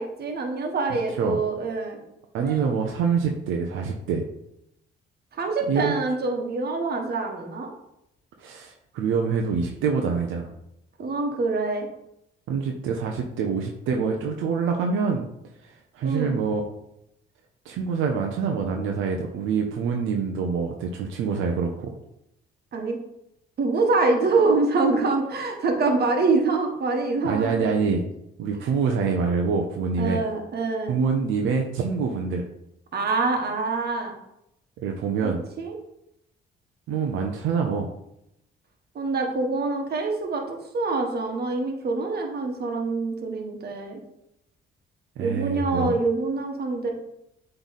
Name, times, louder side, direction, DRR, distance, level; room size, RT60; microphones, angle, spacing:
voice 1, 0.0-2.0 2.4-2.6 5.3-7.7 11.0-11.9 16.0-16.3 22.7-23.0 23.6-27.8 30.0-31.0 32.9-34.1 35.6-35.8 38.9-44.0 45.2-46.9, right 3 dB, 55° right, 3 dB, 1.4 m, -25 dB
voice 2, 2.3-4.2 5.7-5.9 8.4-10.5 12.5-15.3 15.6-16.6 17.6-21.9 27.2-28.0 28.4-30.2 30.9-32.5 34.8-35.4 36.9-37.9 45.2-45.9, right 5 dB, 85° right, 2 dB, 0.7 m, -25 dB
8.0 x 3.3 x 4.1 m, 0.81 s
cardioid pair, 90°, 20 cm